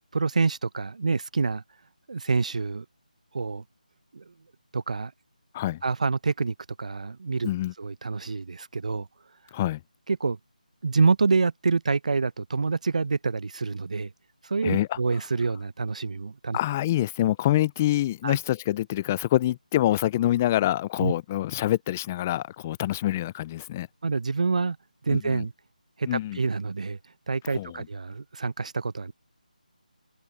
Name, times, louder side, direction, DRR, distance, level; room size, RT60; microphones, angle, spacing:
voice 1, 0.1-1.6 2.1-2.8 3.3-3.6 4.1-4.3 4.7-5.1 5.8-7.5 7.8-9.1 10.1-10.4 10.8-14.1 14.4-16.6 18.2-18.4 21.0-21.1 24.0-24.8 25.0-25.5 26.0-27.0 27.3-29.1, right 4 dB, 55° right, 1.0 m, -27 dB
voice 2, 14.6-15.0 16.5-23.9 25.1-25.4 26.1-26.4 27.5-27.7, left 14 dB, 15° left, 0.4 m, -26 dB
figure-of-eight pair, 165°, 5 cm